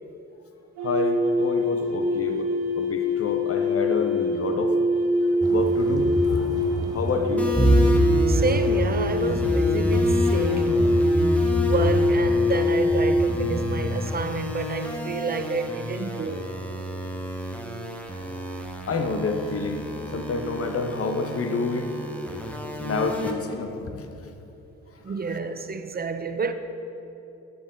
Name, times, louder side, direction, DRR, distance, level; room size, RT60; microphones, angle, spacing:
voice 1, 0.8-2.5 2.8-4.7 5.5-6.5 6.9-7.5 18.9-19.8 20.1-21.9 22.8-24.1, left 3 dB, 45° left, 1.0 m, -28 dB
sound 1, 0.8-13.5, left 2 dB, 90° right, 0.8 m, -24 dB
sound 2, 5.4-14.2, right 1 dB, 10° right, 1.1 m, -25 dB
sound 3, 7.4-23.3, equal, 5° left, 1.2 m, -33 dB
voice 2, 8.3-10.9 11.5-16.6 25.0-26.5, right 4 dB, 30° right, 0.6 m, -30 dB
10.5 x 6.9 x 3.9 m
supercardioid pair, 50°, 33 cm